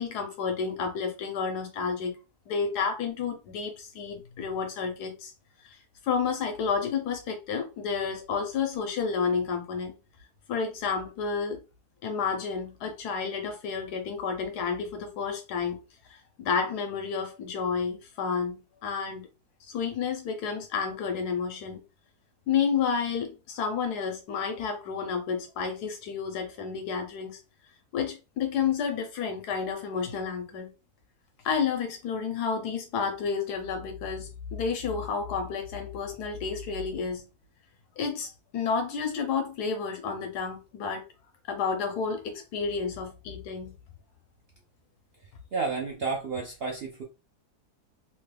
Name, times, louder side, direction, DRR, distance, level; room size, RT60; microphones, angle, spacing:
voice 1, 0.0-2.2 2.5-5.3 5.6-5.8 6.0-9.9 10.5-11.6 12.0-15.8 16.1-19.2 19.6-21.8 22.5-27.4 27.9-30.7 31.4-37.2 38.0-41.0 41.5-43.7, left 6 dB, 85° left, 1.2 m, -30 dB
voice 2, 45.5-47.0, right 4 dB, 75° right, 0.5 m, -31 dB
3.0 x 2.2 x 3.2 m
omnidirectional pair, 1.7 m